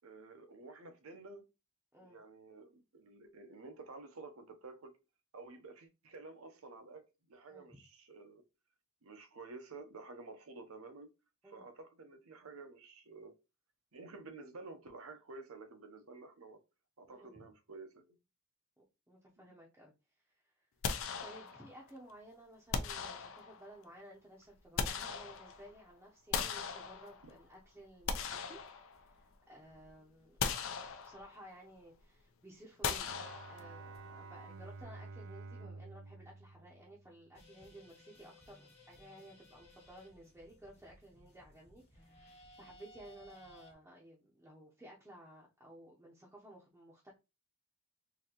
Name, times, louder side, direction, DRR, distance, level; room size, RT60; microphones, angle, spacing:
voice 1, 0.0-1.4 2.0-4.9 5.3-8.4 9.0-11.1 11.4-13.4 13.9-16.6 17.0-18.2 19.4-19.5, right 3 dB, 80° right, 0.7 m, -51 dB
voice 2, 17.1-17.4 18.8-19.9 20.4-20.5 21.2-28.6 29.1-30.4 31.0-33.1 33.4-47.1, right 1 dB, 10° right, 0.6 m, -56 dB
sound 1, 20.8-21.9 22.7-23.8 24.4-25.8 26.3-27.4 27.9-29.3 29.7-29.9 30.4-31.5 32.8-34.0, left 6 dB, 65° left, 0.5 m, -39 dB
Bowed string instrument, 33.0-37.4, right 3 dB, 60° right, 0.4 m, -50 dB
sound 2, 37.3-43.7, left 1 dB, 30° left, 1.1 m, -60 dB
3.9 x 2.7 x 2.9 m
head